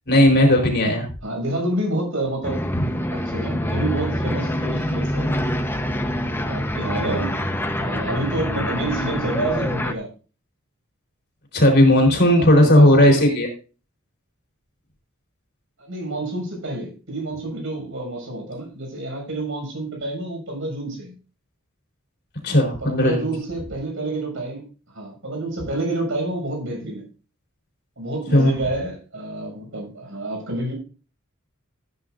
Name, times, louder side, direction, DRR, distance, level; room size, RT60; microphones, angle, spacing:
voice 1, 0.1-1.1 2.8-2.9 11.5-13.5 22.4-23.3 28.3-28.5, left 1 dB, 55° left, 4.1 m, -15 dB
voice 2, 1.2-2.6 3.1-5.3 6.4-10.1 12.3-13.3 15.8-21.1 22.8-24.6 24.9-27.0 28.0-30.7, right 1 dB, 70° right, 6.6 m, -28 dB
sound 1, 2.4-9.9, equal, 10° left, 1.0 m, -25 dB
16.0 x 9.8 x 2.6 m
head